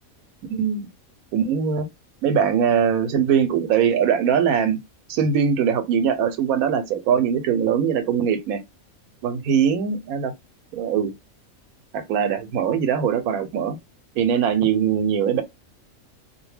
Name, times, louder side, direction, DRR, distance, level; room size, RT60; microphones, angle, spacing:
voice 1, 0.5-0.9 1.3-1.9 2.2-4.8 5.1-8.6 9.2-10.3 10.7-11.1 11.9-13.8 14.2-15.4, right 7 dB, 85° right, 1.0 m, -21 dB
2.4 x 2.2 x 3.2 m
omnidirectional pair, 1.5 m